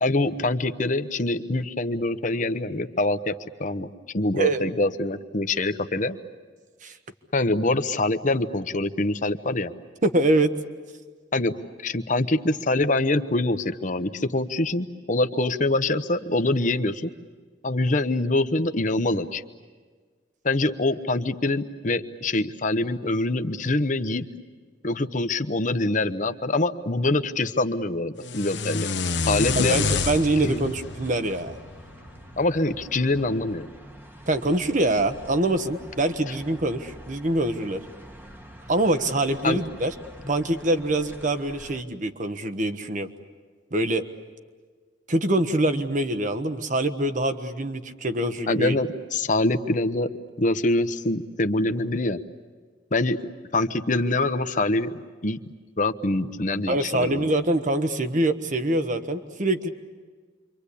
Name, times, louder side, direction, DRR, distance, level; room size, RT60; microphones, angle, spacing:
voice 1, 0.0-3.3 3.6-3.9 4.1-6.2 7.3-9.7 11.3-11.5 11.8-17.1 17.6-19.4 20.4-24.3 24.8-28.9 29.3-29.8 30.4-30.7 32.4-33.7 39.4-39.6 48.5-50.1 50.4-52.2 52.9-53.2 53.5-54.9 55.2-55.4 55.8-57.2, left 2 dB, 45° left, 9 dB, 1.0 m, -24 dB
voice 2, 10.0-10.5 29.6-31.6 34.3-37.8 38.7-39.9 40.3-43.1 43.7-44.0 45.1-48.8 56.7-59.7, right 1 dB, 45° right, 8 dB, 1.3 m, -24 dB
sound 1, 28.2-32.3, left 4 dB, 70° left, 1.1 m, -28 dB
sound 2, 29.4-41.8, right 1 dB, 10° right, 1.4 m, -46 dB
28.5 x 25.0 x 8.5 m, 1.5 s
head